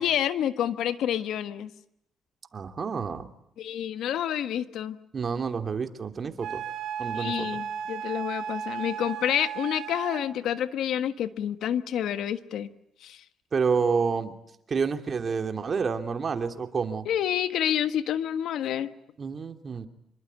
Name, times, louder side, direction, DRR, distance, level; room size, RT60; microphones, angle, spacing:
voice 1, 0.0-1.7 3.6-5.0 7.1-12.7 13.0-13.2 17.0-18.9, left 10 dB, 80° left, 11 dB, 1.5 m, -28 dB
voice 2, 2.5-3.3 5.1-6.6 7.0-7.6 13.5-14.4 14.7-17.0 19.2-19.9, right 5 dB, 45° right, 7 dB, 2.8 m, -29 dB
Wind instrument woodwind instrument, 6.4-10.3, right 8 dB, 80° right, 2.4 m, -35 dB
26.5 x 23.0 x 9.4 m, 0.75 s
cardioid pair, 90°, 0 cm